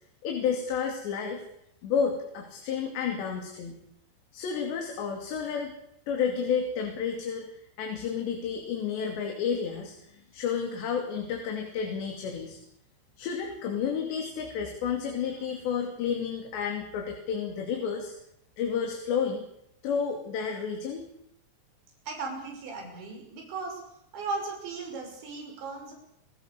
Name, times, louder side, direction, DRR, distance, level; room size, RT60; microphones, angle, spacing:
voice 1, 0.2-1.4 1.8-3.8 4.3-5.7 6.1-12.6 13.2-18.1 18.6-19.5 19.8-21.0, left 6 dB, 75° left, 3 dB, 4.9 m, -31 dB
voice 2, 22.1-23.8 24.1-25.9, right 3 dB, 85° right, 2 dB, 8.1 m, -36 dB
28.0 x 17.5 x 6.8 m, 0.79 s
omnidirectional pair, 5.0 m